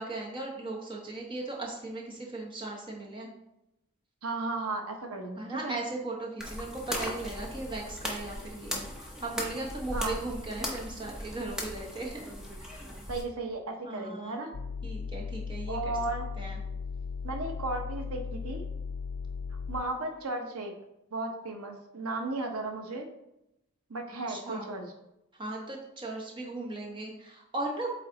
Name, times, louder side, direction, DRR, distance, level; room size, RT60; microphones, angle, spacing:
voice 1, 0.0-3.3 5.4-12.3 12.7-12.9 13.8-14.4 14.8-16.0 16.4-16.6 24.3-24.7 25.3-27.9, right 2 dB, 20° right, -1 dB, 1.0 m, -37 dB
voice 2, 4.2-5.8 9.9-10.2 13.1-14.5 15.7-16.3 17.2-18.6 19.7-20.7 21.1-23.1 23.9-24.9, right 2 dB, 85° right, 4 dB, 0.9 m, -35 dB
sound 1, 6.4-13.2, left 1 dB, 5° right, 0.8 m, -38 dB
sound 2, 14.5-19.8, left 5 dB, 90° left, 0.4 m, -37 dB
8.2 x 3.2 x 3.9 m, 0.86 s
head